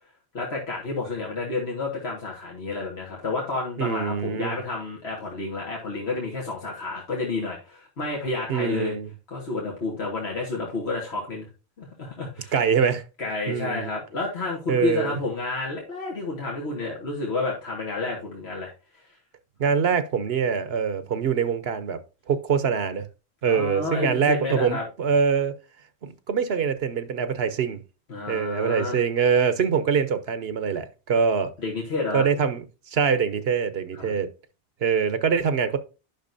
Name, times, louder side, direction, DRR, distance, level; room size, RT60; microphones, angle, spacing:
voice 1, 0.3-9.0 9.3-11.5 11.8-12.5 13.2-18.7 23.5-24.8 28.1-29.0 31.6-32.3 33.9-34.1, left 3 dB, 80° left, 2.0 m, -30 dB
voice 2, 3.8-4.6 8.5-9.1 12.5-13.0 13.5-13.9 14.7-15.2 19.6-22.0 22.3-23.0 23.4-25.5 26.0-27.8 28.3-31.5 32.1-32.6 32.9-34.3 34.8-35.8, right 6 dB, 70° right, 1.0 m, -24 dB
10.5 x 6.0 x 2.6 m
omnidirectional pair, 1.1 m